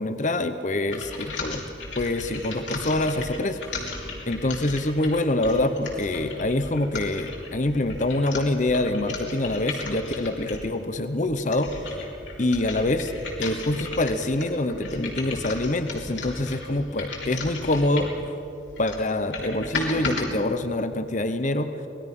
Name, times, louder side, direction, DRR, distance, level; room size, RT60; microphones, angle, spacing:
voice 1, 0.0-1.6 2.0-3.6 4.3-11.7 12.4-13.1 13.4-18.1 18.8-21.7, left 2 dB, 40° left, 9 dB, 0.9 m, -25 dB
sound 1, 0.9-10.7 11.3-18.3 18.7-20.3, left 3 dB, 75° left, 3.5 m, -36 dB
26.0 x 20.0 x 5.5 m, 3.0 s
head